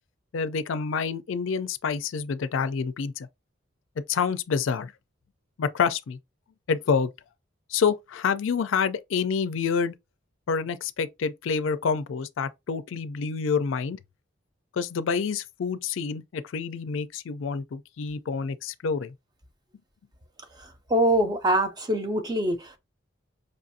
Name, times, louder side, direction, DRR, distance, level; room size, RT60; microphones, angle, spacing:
voice 1, 0.3-3.3 4.1-4.9 5.6-6.2 6.7-7.1 7.7-9.9 10.5-14.0 14.7-19.1, left 6 dB, 75° left, 0.4 m, -27 dB
voice 2, 20.9-22.8, right 1 dB, 20° right, 0.5 m, -24 dB
5.2 x 2.5 x 2.6 m
head